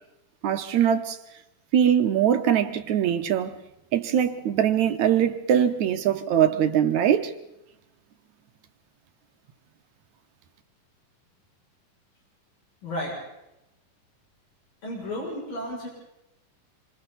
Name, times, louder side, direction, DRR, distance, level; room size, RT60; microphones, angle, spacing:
voice 1, 0.4-1.2 1.7-3.6 3.9-7.3, right 9 dB, 65° right, 2.1 m, -22 dB
voice 2, 12.8-13.2 14.8-15.9, left 1 dB, 70° left, 8.4 m, -32 dB
27.0 x 26.5 x 4.1 m
omnidirectional pair, 4.1 m